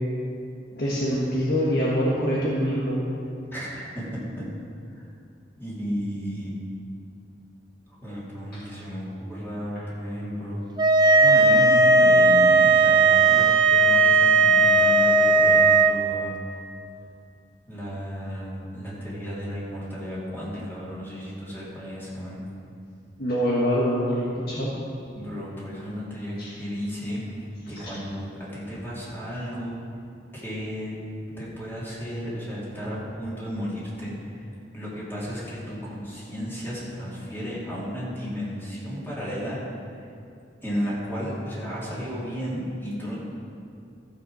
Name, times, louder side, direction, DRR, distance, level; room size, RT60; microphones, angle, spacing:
voice 1, 0.7-3.0 8.5-8.6 23.2-24.7 26.4-26.5 27.8-27.9, equal, 60° left, -6 dB, 1.5 m, -25 dB
voice 2, 3.5-4.4 4.9-5.1 5.6-6.5 7.9-10.6 11.2-16.3 17.7-22.4 25.1-27.2 27.7-29.7 30.3-30.9 31.4-34.1 34.7-39.7 40.6-43.2, equal, 15° left, -8 dB, 2.9 m, -33 dB
sound 1, 10.8-15.9, right 3 dB, 25° right, 0.6 m, -17 dB
14.5 x 6.9 x 4.9 m, 2.5 s
head